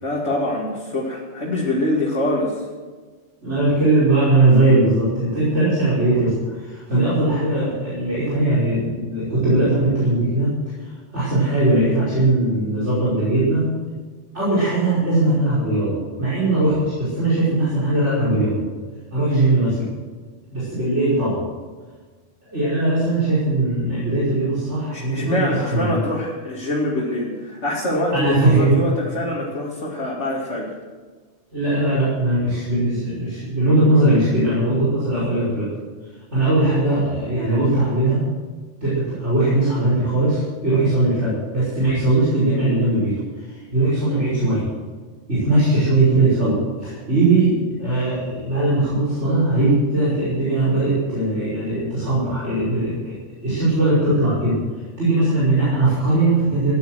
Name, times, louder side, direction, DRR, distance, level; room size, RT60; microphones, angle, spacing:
voice 1, 0.0-2.6 24.9-30.7, left 1 dB, 75° left, -5 dB, 2.7 m, -24 dB
voice 2, 3.4-10.5 11.1-13.7 14.3-18.6 19.1-19.9 20.5-21.4 22.5-26.0 28.1-28.7 31.5-35.7 36.3-38.3 38.8-44.7 45.3-53.2 53.4-54.6 55.0-56.7, right 2 dB, 70° right, -10 dB, 5.7 m, -19 dB
16.0 x 10.5 x 6.4 m, 1.4 s
omnidirectional pair, 1.2 m